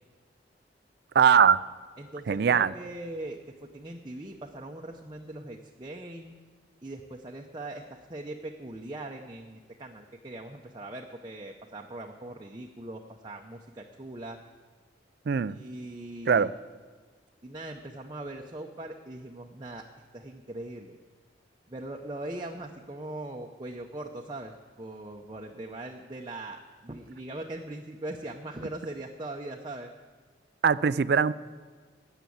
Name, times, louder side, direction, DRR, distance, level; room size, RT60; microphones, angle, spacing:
voice 1, 1.1-1.6 2.3-2.7 15.3-15.6 16.3-16.5 30.6-31.3, right 7 dB, 55° right, 17 dB, 0.4 m, -21 dB
voice 2, 2.0-6.3 6.8-14.4 15.5-16.5 17.4-19.8 20.1-21.0 21.7-29.9, right 1 dB, 25° right, 0 dB, 0.7 m, -40 dB
12.5 x 8.2 x 8.5 m, 1.4 s
head